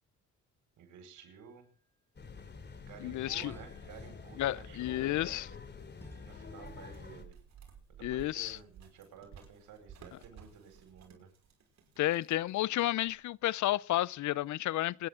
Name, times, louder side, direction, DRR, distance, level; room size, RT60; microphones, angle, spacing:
voice 1, 0.8-1.7 2.7-5.4 6.2-7.4 8.0-11.3, right 6 dB, 85° right, 5.1 m, -52 dB
sound 1, 1.2-1.9 3.4-7.0, equal, 10° left, 3.6 m, -61 dB
sound 2, 2.2-7.2, left 5 dB, 35° left, 2.9 m, -48 dB
voice 2, 3.0-3.5 4.4-5.5 8.0-8.6 12.0-15.1, left 15 dB, 70° left, 0.6 m, -31 dB
sound 3, 6.6-13.3, right 7 dB, 60° right, 5.7 m, -55 dB
26.5 x 10.5 x 3.8 m
cardioid pair, 90°, 30 cm